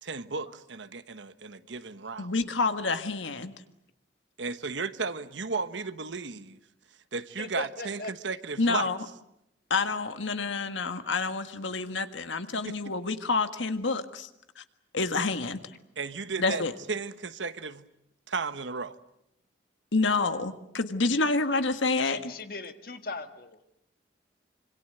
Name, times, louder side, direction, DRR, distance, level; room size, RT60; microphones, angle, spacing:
voice 1, 0.0-2.3 4.4-6.6 7.1-8.9 12.6-12.7 16.0-16.6 16.9-17.9 18.3-19.0, right 4 dB, 80° right, 1.2 m, -34 dB
voice 2, 2.2-3.5 8.6-9.0 9.7-14.3 14.6-14.7 14.9-15.6 16.4-16.7 19.9-22.2, left 3 dB, 90° left, 1.7 m, -28 dB
voice 3, 7.4-8.1 16.5-16.6 21.1-21.3 22.0-23.7, left 3 dB, 50° left, 1.7 m, -38 dB
26.0 x 25.5 x 7.9 m
head